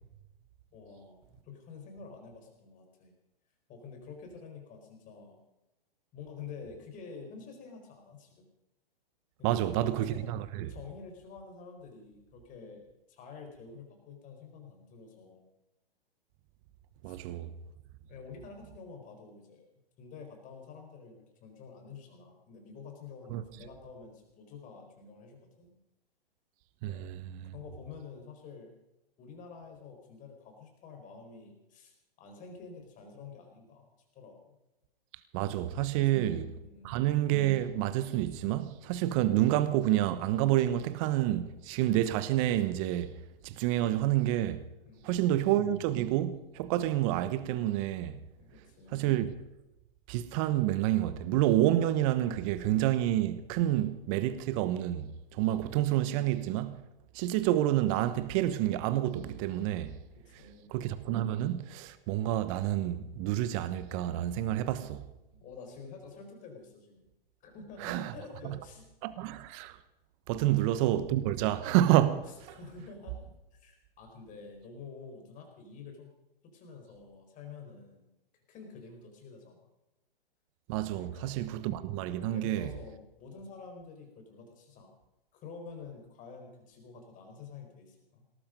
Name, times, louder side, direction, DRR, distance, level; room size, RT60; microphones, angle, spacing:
voice 1, 0.7-3.1 3.7-5.4 6.1-8.5 9.4-10.3 10.7-15.4 17.0-17.2 18.1-19.6 20.0-25.8 26.8-27.1 27.5-28.7 29.2-34.6 36.0-36.3 36.6-36.9 44.8-45.3 48.4-49.1 60.2-60.8 65.3-67.1 67.4-68.8 70.4-70.7 72.2-76.1 76.4-78.1 78.5-79.7 81.0-81.3 82.3-84.9 85.3-88.2, left 5 dB, 25° left, 4.6 m, -49 dB
voice 2, 9.4-10.7 17.0-17.5 23.3-23.4 26.8-27.5 35.3-36.5 36.8-43.1 43.4-44.6 45.0-48.2 48.9-49.3 50.1-56.8 57.1-60.0 60.7-65.0 67.8-68.1 69.0-69.8 70.3-72.6 80.7-82.7, right 13 dB, 35° right, 1.1 m, -29 dB
18.5 x 13.5 x 5.2 m
hypercardioid pair, 125°, 29 cm